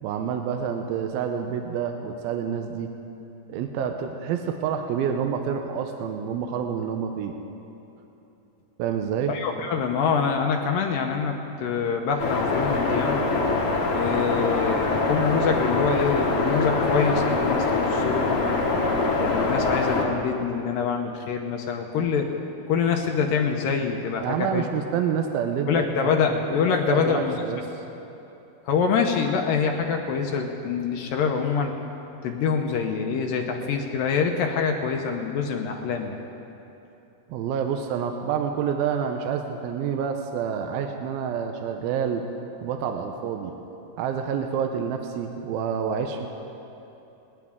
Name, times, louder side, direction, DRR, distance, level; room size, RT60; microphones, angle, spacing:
voice 1, 0.0-2.9 3.5-7.3 8.8-9.3 24.2-26.2 26.9-27.8 37.3-42.2 42.6-43.5 44.0-46.3, right 7 dB, 80° right, 5 dB, 2.4 m, -28 dB
voice 2, 9.3-11.3 11.6-13.2 13.9-18.3 19.2-22.3 22.7-24.7 25.7-27.4 28.7-31.7 32.2-36.2, left 6 dB, 75° left, 3 dB, 2.3 m, -25 dB
sound 1, 12.2-20.1, left 3 dB, 55° left, 1.6 m, -24 dB
28.5 x 9.9 x 3.6 m, 3.0 s
omnidirectional pair, 4.4 m